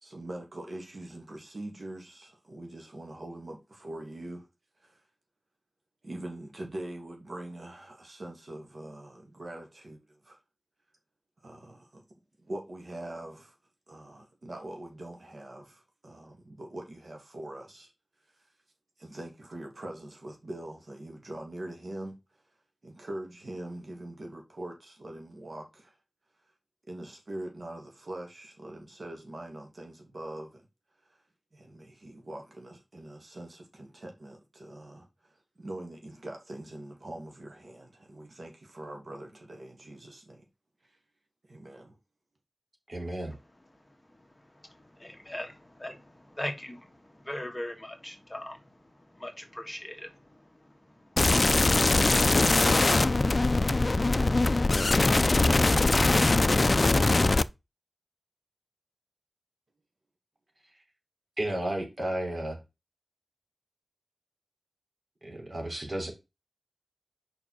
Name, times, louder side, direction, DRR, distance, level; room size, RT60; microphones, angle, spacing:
voice 1, 0.0-4.5 4.8-5.0 6.0-10.4 11.4-12.0 12.4-13.6 13.9-17.9 19.0-22.4 22.8-26.0 26.9-30.7 31.0-31.2 31.5-40.4 40.8-41.0 41.5-42.0, right 1 dB, 65° right, 2.2 m, -43 dB
voice 2, 42.9-43.4 61.4-62.6 65.2-66.1, right 1 dB, 50° right, 3.2 m, -33 dB
voice 3, 45.0-48.9 49.2-51.6, left 1 dB, 20° left, 1.5 m, -40 dB
sound 1, 51.2-57.4, left 2 dB, 50° left, 0.4 m, -22 dB
5.3 x 4.7 x 6.3 m
wide cardioid pair, 65°, 0 cm